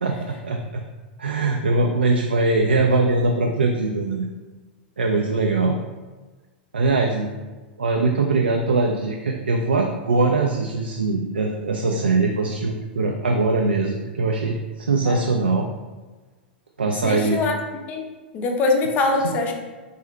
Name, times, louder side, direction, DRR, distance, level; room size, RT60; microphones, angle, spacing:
voice 1, 0.0-0.8 1.2-4.3 5.0-5.8 6.7-7.3 7.8-15.7 16.8-17.4 19.2-19.3, right 3 dB, 75° right, 1 dB, 0.3 m, -22 dB
voice 2, 16.9-17.5 17.9-18.1 18.3-19.5, left 3 dB, 30° left, 2 dB, 0.5 m, -23 dB
3.8 x 2.7 x 3.2 m, 1.3 s
figure-of-eight pair, 95°, 6 cm